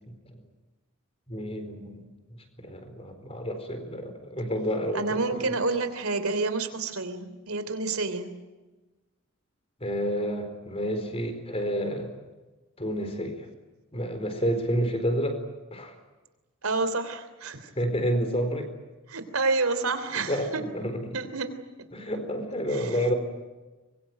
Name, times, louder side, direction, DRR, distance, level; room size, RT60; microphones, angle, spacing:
voice 1, 0.1-0.4 1.3-5.4 9.8-12.1 12.8-13.5 13.9-15.4 15.7-15.9 17.8-18.7 20.3-21.2 21.9-23.1, equal, 30° left, 7 dB, 4.3 m, -30 dB
voice 2, 4.9-8.3 16.6-17.7 19.1-20.7 21.1-21.5 22.7-23.1, right 3 dB, 85° right, 10 dB, 3.3 m, -29 dB
25.0 x 22.5 x 9.3 m, 1.2 s
head